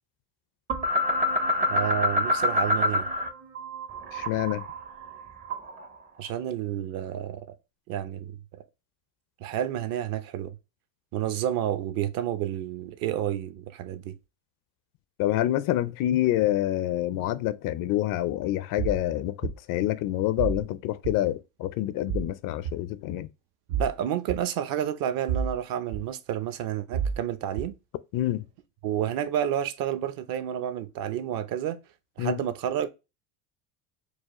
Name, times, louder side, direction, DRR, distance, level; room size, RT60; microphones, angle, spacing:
sound 1, 0.7-3.3 3.6-5.9, left 1 dB, 20° right, 0.5 m, -26 dB
voice 1, 1.7-3.1 6.2-7.4 7.9-8.4 9.4-10.6 11.1-14.1 23.8-27.7 28.8-31.8 32.2-32.9, right 10 dB, 55° right, 0.7 m, -30 dB
voice 2, 4.1-4.7 15.2-23.3 28.1-28.5 32.2-32.4, left 14 dB, 50° left, 0.4 m, -27 dB
sound 2, 18.8-19.0 19.4-19.5 20.4-20.6 21.0-21.2 22.1-22.3 22.6-22.7 23.7-23.9 24.3-24.4 25.3-25.6 25.9-26.0 26.9-27.2 27.6-27.7, right 7 dB, 85° right, 0.8 m, -29 dB
4.7 x 2.3 x 3.0 m
cardioid pair, 130°, 41 cm